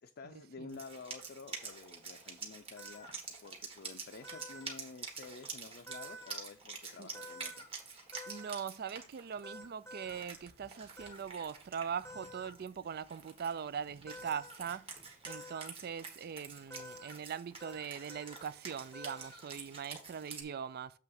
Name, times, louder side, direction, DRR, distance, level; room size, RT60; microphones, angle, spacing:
voice 1, 0.0-3.1 3.4-7.7, left 4 dB, 50° left, 0.5 m, -50 dB
Wind instrument woodwind instrument, 0.7-20.4, right 4 dB, 25° right, 1.5 m, -48 dB
sound 1, 2.8-3.1 4.2-4.8 5.9-6.4 7.1-7.7 8.1-8.6 9.4-10.2 11.0-11.2 12.0-12.5 14.1-14.6 15.3-15.7 16.7-17.2 17.6-17.8 18.1-18.4 18.9-19.4, equal, 15° left, 0.8 m, -49 dB
voice 2, 8.3-21.0, right 7 dB, 50° right, 0.4 m, -41 dB
7.6 x 3.4 x 5.8 m
head